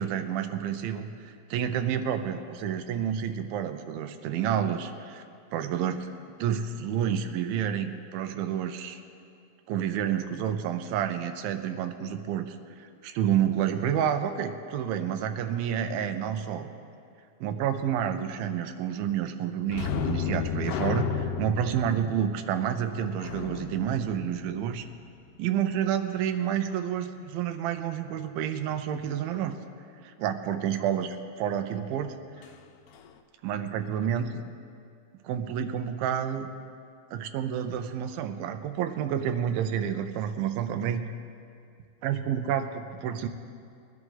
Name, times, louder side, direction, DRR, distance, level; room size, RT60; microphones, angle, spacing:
voice 1, 0.0-5.2 5.5-6.1 6.4-9.0 9.7-16.7 17.4-24.9 25.4-29.6 30.0-32.1 33.4-34.4 35.2-36.5 37.1-41.0 42.0-43.3, right 9 dB, 80° right, 8 dB, 2.4 m, -29 dB
sound 1, 19.7-25.1 32.4-32.6 32.9-33.1, left 7 dB, 80° left, 2.0 m, -33 dB
20.5 x 11.0 x 3.9 m, 2.3 s
omnidirectional pair, 4.4 m